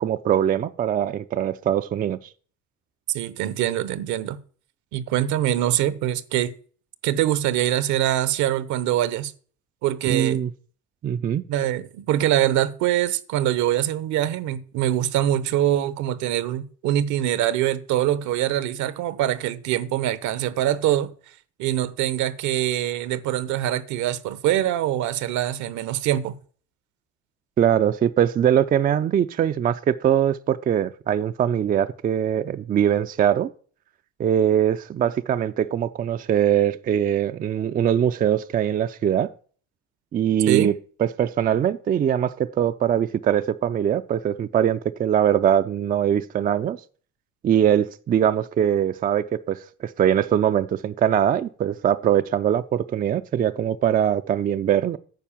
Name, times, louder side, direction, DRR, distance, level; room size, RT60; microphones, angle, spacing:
voice 1, 0.0-2.2 10.1-10.5 11.0-11.4 27.6-33.5 34.2-39.3 40.1-40.7 41.0-46.8 47.4-55.0, right 9 dB, 30° right, 0.4 m, -22 dB
voice 2, 3.1-4.4 4.9-6.5 7.0-9.3 9.8-10.4 11.5-21.1 21.6-26.4 40.5-40.7, right 12 dB, 65° right, 0.9 m, -23 dB
9.4 x 4.8 x 7.2 m
supercardioid pair, 100°, 31 cm